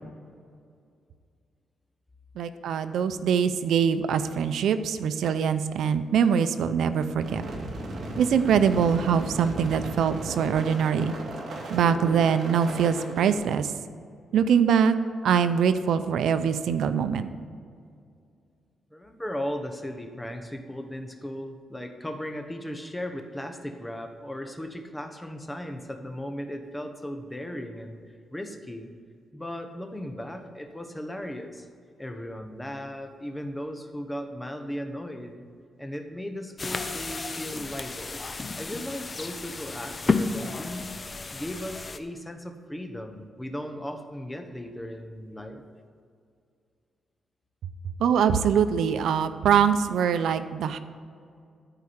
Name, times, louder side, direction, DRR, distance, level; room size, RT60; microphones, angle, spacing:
voice 1, 2.4-7.4 8.2-11.1 11.7-13.7 14.3-14.9 15.2-17.3 48.0-50.8, right 7 dB, 85° right, 11 dB, 0.6 m, -23 dB
sound 1, 7.2-13.3, right 1 dB, 55° right, 2.4 m, -36 dB
voice 2, 18.9-28.0 28.3-28.9 29.3-31.7 32.0-35.4 35.8-38.2 38.6-40.9 41.3-45.6, equal, 10° left, 5 dB, 1.2 m, -36 dB
sound 2, 36.6-42.0, left 3 dB, 30° left, 0.7 m, -32 dB
13.5 x 4.8 x 8.6 m, 2.3 s
cardioid pair, 110°, 0 cm